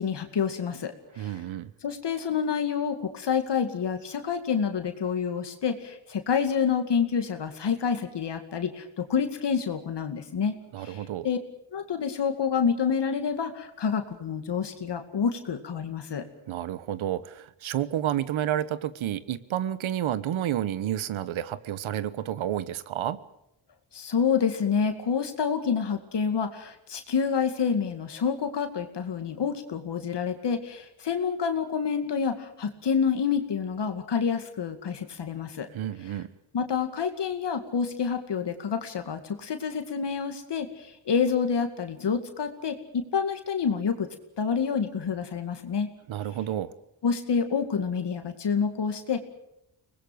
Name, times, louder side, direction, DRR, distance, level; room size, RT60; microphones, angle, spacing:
voice 1, 0.0-1.4 1.8-11.4 11.7-16.2 23.9-35.7 36.5-44.1 44.4-45.9 47.0-49.2, left 6 dB, 60° left, 7 dB, 2.3 m, -28 dB
voice 2, 1.2-1.7 10.7-11.3 16.5-23.2 35.7-36.3 46.1-46.7, right 11 dB, 85° right, 16 dB, 1.2 m, -30 dB
24.0 x 20.0 x 7.9 m, 0.82 s
cardioid pair, 85°, 46 cm